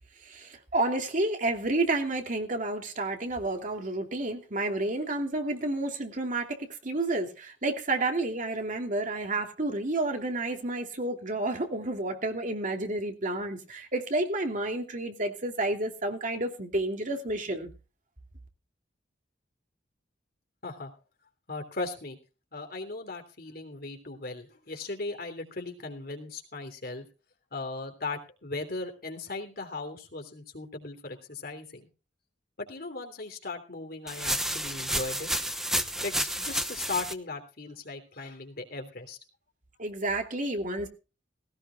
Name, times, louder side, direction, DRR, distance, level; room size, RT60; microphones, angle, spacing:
voice 1, 0.2-6.6 6.8-17.7 39.8-40.9, right 2 dB, 45° right, 4 dB, 2.8 m, -30 dB
voice 2, 21.5-22.2 22.5-27.0 27.5-31.9 32.6-35.3 36.0-39.2, left 3 dB, 55° left, 5 dB, 3.3 m, -38 dB
sound 1, 34.1-37.1, right 1 dB, ahead, 0.9 m, -30 dB
18.5 x 17.5 x 2.4 m, 0.32 s
head